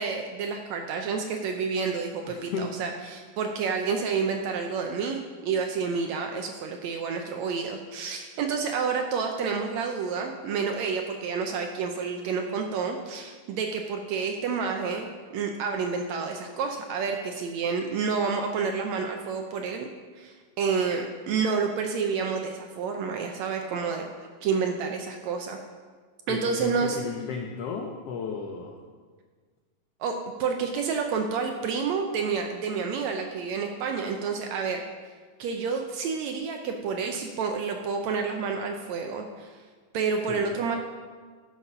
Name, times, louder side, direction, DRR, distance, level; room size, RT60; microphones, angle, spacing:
voice 1, 0.0-15.1 15.3-19.9 20.2-24.0 24.4-25.6 26.3-27.0 30.0-34.8 35.4-39.5 39.9-40.8, right 5 dB, 75° right, 4 dB, 1.7 m, -29 dB
voice 2, 2.3-2.7 26.3-28.8 40.3-40.5, left 5 dB, 90° left, 3 dB, 1.3 m, -34 dB
12.0 x 6.3 x 5.5 m, 1.5 s
omnidirectional pair, 3.7 m